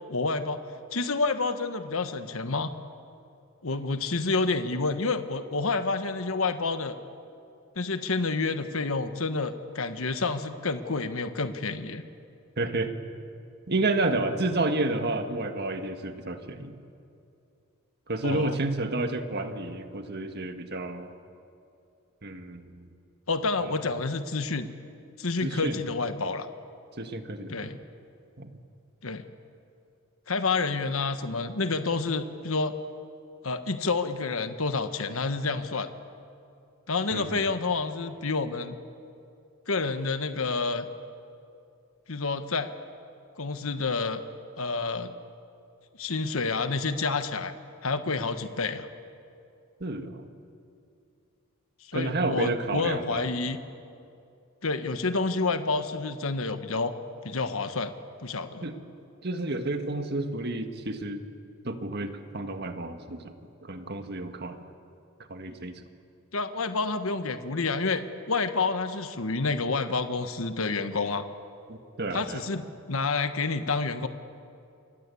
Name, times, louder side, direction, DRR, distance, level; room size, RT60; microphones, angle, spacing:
voice 1, 0.1-0.6 0.9-2.7 3.6-7.0 7.8-12.0 18.2-18.6 23.3-24.7 25.2-26.5 27.5-27.8 29.0-29.3 30.3-32.7 33.4-35.9 36.9-38.8 39.7-40.9 42.1-42.7 43.4-44.2 44.6-45.1 46.0-47.5 47.8-48.9 51.9-53.6 54.6-56.9 57.2-57.9 58.2-58.7 66.3-68.0 68.3-71.3 72.1-72.6 72.9-74.1, left 3 dB, 75° left, 9 dB, 1.3 m, -29 dB
voice 2, 12.6-12.9 13.7-16.7 18.1-21.1 22.2-22.9 23.6-23.8 25.4-25.8 27.0-27.7 28.4-28.5 37.1-37.4 49.8-50.2 51.9-53.3 58.6-58.7 59.2-61.2 61.6-63.3 63.6-64.6 65.3-65.7 71.7-72.5, right 2 dB, 50° right, 7 dB, 1.8 m, -30 dB
28.5 x 23.5 x 8.5 m, 2.5 s
head